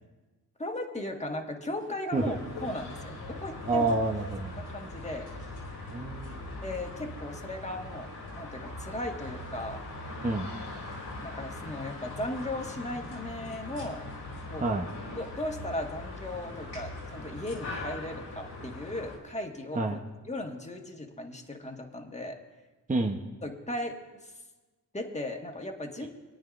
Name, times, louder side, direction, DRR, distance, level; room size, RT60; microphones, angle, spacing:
voice 1, 0.6-2.3 2.6-3.9 4.7-5.3 6.6-8.1 8.4-9.8 11.2-14.0 14.5-14.6 15.2-20.0 20.2-22.4 23.4-24.3 24.9-26.1, left 1 dB, 15° left, 2 dB, 1.7 m, -37 dB
sound 1, 2.1-19.2, left 2 dB, 70° left, 2.9 m, -41 dB
voice 2, 3.7-4.6 5.9-6.4 10.2-10.5 14.6-14.9 19.7-20.0 22.9-23.2 26.0-26.1, right 2 dB, 20° right, 2 dB, 0.9 m, -28 dB
25.5 x 8.9 x 2.6 m, 1.2 s
supercardioid pair, 55°, 43 cm